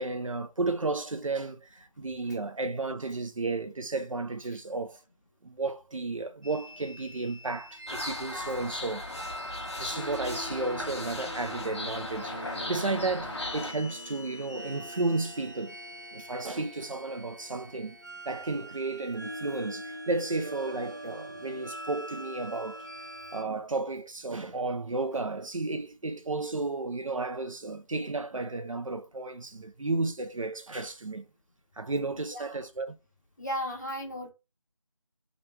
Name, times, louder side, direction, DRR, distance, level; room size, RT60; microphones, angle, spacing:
voice 1, 0.0-5.0 5.4-9.0 9.8-15.8 16.1-18.0 18.3-22.8 23.3-31.3 31.8-33.0, right 3 dB, 75° right, 0.7 m, -33 dB
sound 1, 6.4-23.4, equal, 35° right, 0.4 m, -43 dB
sound 2, 7.9-13.7, left 2 dB, 55° left, 0.8 m, -37 dB
voice 2, 32.2-32.6 33.4-34.3, equal, 35° left, 0.9 m, -36 dB
3.0 x 2.5 x 3.3 m
figure-of-eight pair, 175°, 17 cm